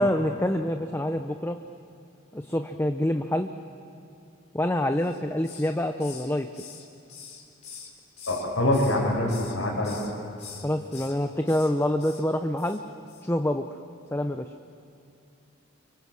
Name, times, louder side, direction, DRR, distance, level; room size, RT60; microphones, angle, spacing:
voice 1, 0.0-1.6 2.3-3.5 4.5-6.5 10.6-12.8 13.2-13.7 14.1-14.5, left 1 dB, 10° left, 6 dB, 0.8 m, -26 dB
Hiss, 5.0-5.7 6.0-8.5 8.7-9.6 9.8-10.1 10.4-11.1 11.5-11.7 12.0-12.2 12.6-12.8 13.1-13.2, left 6 dB, 35° left, 3.5 m, -45 dB
voice 2, 8.3-9.9, left 1 dB, 90° left, -5 dB, 5.9 m, -24 dB
29.5 x 24.5 x 7.6 m, 2.7 s
head